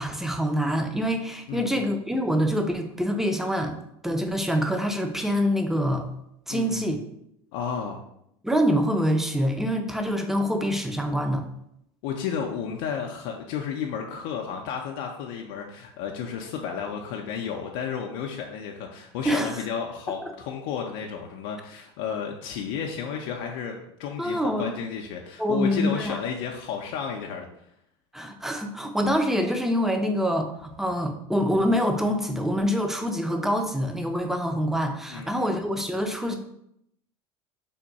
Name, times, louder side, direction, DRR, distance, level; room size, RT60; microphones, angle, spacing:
voice 1, 0.0-6.1 6.5-7.0 8.4-11.4 19.3-19.6 24.2-24.7 25.4-26.2 28.1-36.4, equal, 5° right, 5 dB, 0.5 m, -25 dB
voice 2, 1.5-1.8 6.5-6.9 7.5-8.0 12.0-27.5 35.1-35.5, left 7 dB, 75° left, 1 dB, 0.4 m, -32 dB
3.5 x 2.2 x 3.9 m, 0.76 s
supercardioid pair, 95°, 13 cm